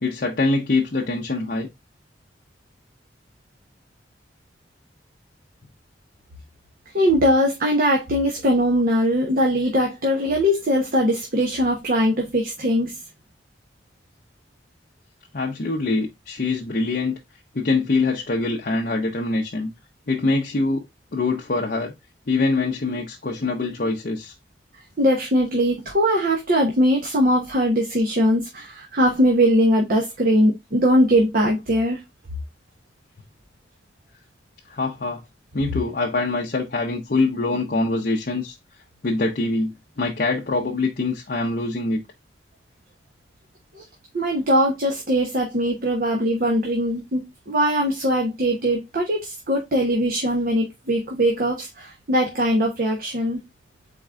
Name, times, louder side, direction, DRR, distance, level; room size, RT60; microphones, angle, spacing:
voice 1, 0.0-1.7 15.3-17.2 17.5-19.7 20.1-20.8 21.1-21.9 22.3-24.3 34.7-35.2 35.5-38.6 39.0-42.0, left 3 dB, 50° left, 0.6 m, -24 dB
voice 2, 6.9-13.0 25.0-32.0 43.8-43.9 44.1-47.2 47.5-53.4, equal, 50° right, 1.0 m, -21 dB
4.1 x 3.7 x 3.4 m
head